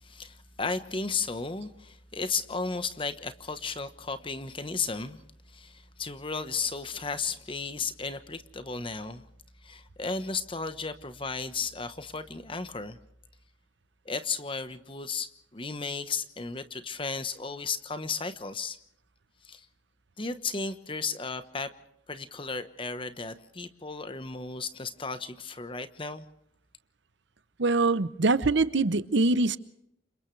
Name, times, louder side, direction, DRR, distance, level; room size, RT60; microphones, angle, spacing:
voice 1, 0.0-5.2 5.5-9.2 9.6-13.0 14.0-18.8 19.4-19.7 20.2-21.7 22.1-26.2, left 4 dB, 25° left, 1.1 m, -34 dB
voice 2, 27.6-29.6, right 3 dB, 65° right, 0.9 m, -23 dB
29.5 x 26.5 x 3.3 m
head